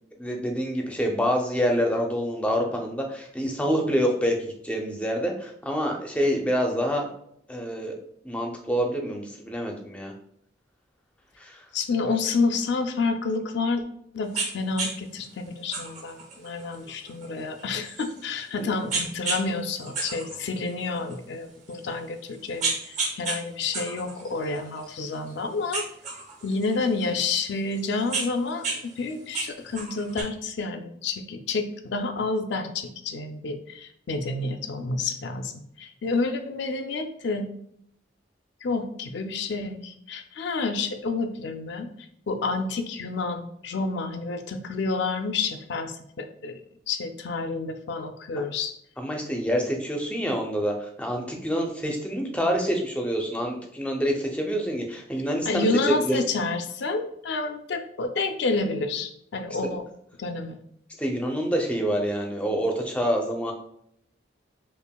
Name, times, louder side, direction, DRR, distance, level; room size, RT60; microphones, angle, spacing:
voice 1, 0.2-7.1 7.5-8.0 8.2-10.1 11.4-11.6 18.6-18.7 48.4-48.5 49.0-55.7 56.0-56.2 61.0-63.5, equal, 5° left, 1 dB, 0.5 m, -27 dB
voice 2, 11.7-13.8 14.1-25.9 26.4-35.5 35.8-37.5 38.6-41.9 42.3-46.6 46.9-48.7 55.5-59.8 60.2-60.6, left 3 dB, 65° left, 7 dB, 0.4 m, -29 dB
sound 1, 14.3-14.5 14.8-14.9 15.7-18.4 18.9-19.4 19.8-21.1 21.7-21.8 22.3-23.4 23.7-25.3 25.7-27.1 27.7-28.8 29.1-30.2, right 3 dB, 40° right, 0.8 m, -31 dB
5.4 x 2.4 x 2.2 m, 0.71 s
head